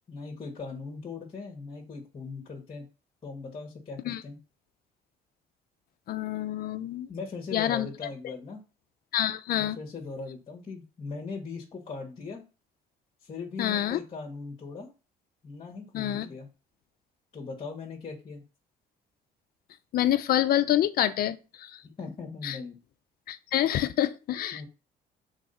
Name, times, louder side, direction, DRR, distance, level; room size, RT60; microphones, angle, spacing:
voice 1, 0.1-2.9 3.2-4.4 7.1-8.6 9.5-12.4 13.2-14.9 15.4-16.5 17.3-18.4 22.0-22.8 24.5-24.7, left 4 dB, 30° left, 0 dB, 2.0 m, -39 dB
voice 2, 6.1-7.1 7.5-7.9 9.1-9.8 13.6-14.0 15.9-16.3 19.9-21.8 22.4-22.6 23.3-24.6, left 12 dB, 65° left, 11 dB, 0.8 m, -27 dB
6.1 x 4.1 x 5.7 m, 0.32 s
cardioid pair, 110°, 17 cm